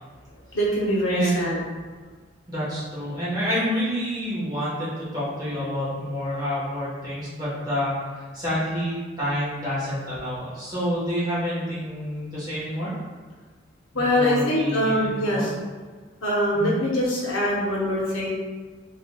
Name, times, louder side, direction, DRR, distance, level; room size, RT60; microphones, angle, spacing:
voice 1, 0.5-1.6 13.9-15.5 16.2-18.3, equal, 80° left, -4 dB, 0.8 m, -23 dB
voice 2, 1.1-1.5 2.5-12.9 13.9-15.5 16.5-16.7, equal, 20° right, -10 dB, 1.1 m, -28 dB
3.2 x 2.7 x 2.2 m, 1.5 s
head